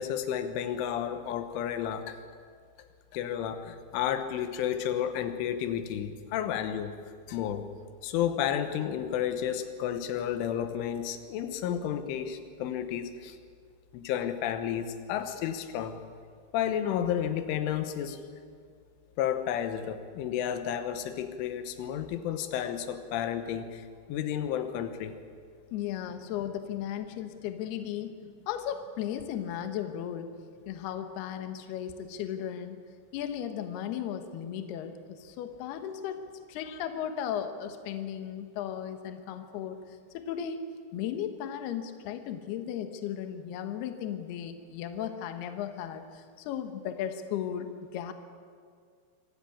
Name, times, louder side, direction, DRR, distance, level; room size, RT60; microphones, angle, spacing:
voice 1, 0.0-2.2 3.1-7.0 7.3-7.7 8.0-13.4 13.9-16.0 16.5-18.2 19.2-25.2 36.7-36.8, left 9 dB, 90° left, 9 dB, 3.7 m, -32 dB
voice 2, 25.7-28.1 28.5-30.3 30.7-32.8 33.1-36.2 36.5-39.8 40.1-40.6 40.9-48.1, left 9 dB, 65° left, 7 dB, 3.0 m, -35 dB
25.5 x 15.5 x 8.7 m, 2.1 s
omnidirectional pair, 5.4 m